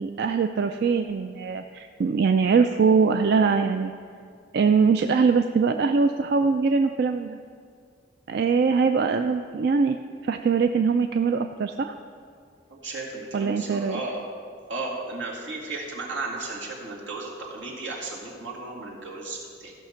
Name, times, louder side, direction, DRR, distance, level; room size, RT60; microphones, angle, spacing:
voice 1, 0.0-3.9 4.5-7.4 8.3-10.0 10.2-11.9 13.3-14.0, right 5 dB, 60° right, 7 dB, 0.4 m, -22 dB
voice 2, 12.7-14.2 14.7-19.7, right 2 dB, 85° right, -3 dB, 2.3 m, -34 dB
14.5 x 5.8 x 5.7 m, 2.2 s
head